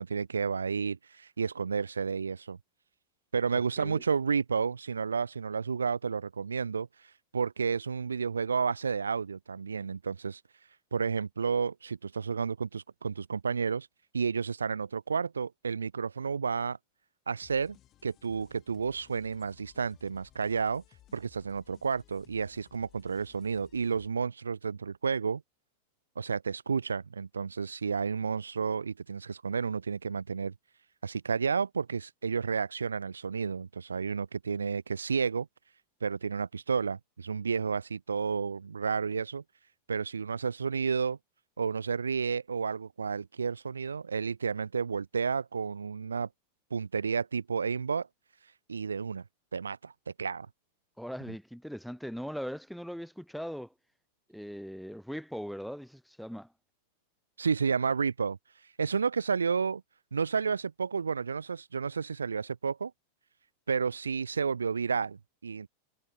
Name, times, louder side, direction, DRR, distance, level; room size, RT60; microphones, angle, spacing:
voice 1, 0.0-2.6 3.3-6.9 7.3-10.4 10.9-13.9 14.1-16.8 17.3-17.8 18.0-20.8 21.1-25.4 26.2-30.5 31.0-35.5 36.0-39.4 39.9-41.2 41.6-46.3 46.7-48.1 48.7-49.2 49.5-49.9 50.2-50.5 57.4-58.4 58.8-59.8 60.1-62.9 63.7-65.7, right 5 dB, 75° right, 0.7 m, -31 dB
sound 1, 17.4-24.1, left 13 dB, 35° left, 5.3 m, -60 dB
voice 2, 51.0-53.7 54.3-56.5, equal, ahead, 0.9 m, -40 dB
figure-of-eight pair, 90°, 0 cm